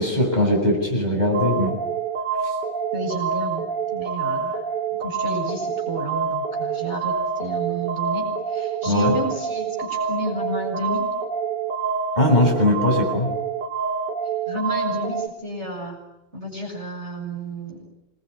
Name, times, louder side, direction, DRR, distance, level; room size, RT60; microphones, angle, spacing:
voice 1, 0.0-1.8 8.9-9.1 12.2-13.3, left 1 dB, 20° left, 0 dB, 7.8 m, -20 dB
sound 1, 1.3-15.3, right 5 dB, 65° right, 2.7 m, -27 dB
voice 2, 2.9-4.6 5.0-11.1 14.5-16.0 16.3-17.8, right 1 dB, 35° right, 1 dB, 7.1 m, -31 dB
27.5 x 21.5 x 10.0 m, 0.88 s
omnidirectional pair, 2.0 m